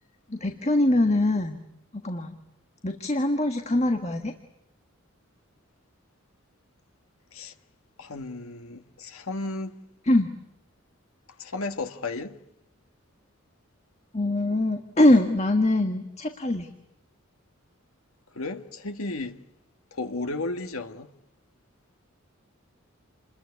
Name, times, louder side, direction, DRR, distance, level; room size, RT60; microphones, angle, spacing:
voice 1, 0.3-1.6 1.9-2.4 2.8-4.3 10.1-10.4 14.1-16.7, left 1 dB, 30° left, 1.5 m, -23 dB
voice 2, 8.0-9.8 11.4-12.4 18.3-19.4 19.9-21.1, left 2 dB, 80° left, 1.7 m, -33 dB
29.0 x 21.0 x 9.7 m
head